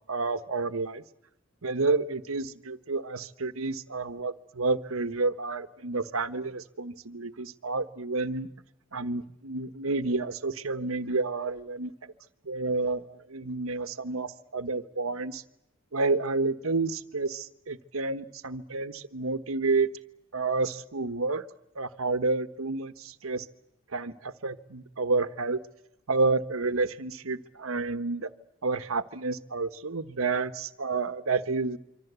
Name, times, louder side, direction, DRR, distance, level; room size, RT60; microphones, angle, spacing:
voice 1, 0.1-1.0 1.6-8.5 8.9-12.1 12.4-15.4 15.9-19.9 20.3-21.4 21.7-23.4 23.9-25.6 26.1-28.3 28.6-31.8, right 3 dB, 90° right, 12 dB, 1.3 m, -30 dB
26.0 x 25.5 x 8.2 m, 0.83 s
head